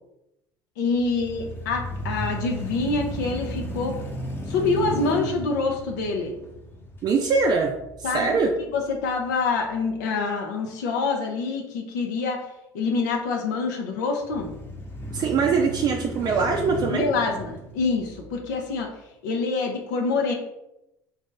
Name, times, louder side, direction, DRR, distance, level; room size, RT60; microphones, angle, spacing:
voice 1, 0.8-3.9 4.5-6.3 8.0-8.3 8.7-12.4 12.7-14.5 16.9-18.9 19.2-20.3, left 4 dB, 85° left, 2 dB, 0.5 m, -26 dB
sound 1, 1.0-9.1 9.6-9.7 14.2-18.7, equal, 25° left, 0.9 m, -35 dB
voice 2, 7.0-8.5 15.1-17.1, right 5 dB, 45° right, 2 dB, 0.4 m, -23 dB
2.7 x 2.5 x 3.8 m, 0.89 s
hypercardioid pair, 75°, 9 cm